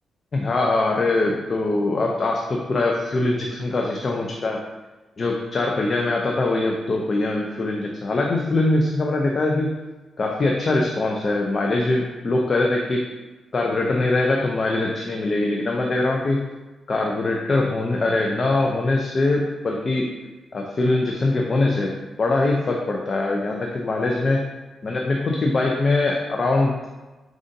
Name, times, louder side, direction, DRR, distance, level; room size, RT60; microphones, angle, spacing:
voice 1, 0.3-4.6 5.2-9.7 10.2-13.1 13.5-16.5 16.9-20.1 20.5-21.9 22.2-24.5 24.8-26.9, left 2 dB, 40° left, 0 dB, 0.5 m, -22 dB
4.7 x 3.8 x 2.7 m, 1.2 s
cardioid pair, 105°, 0 cm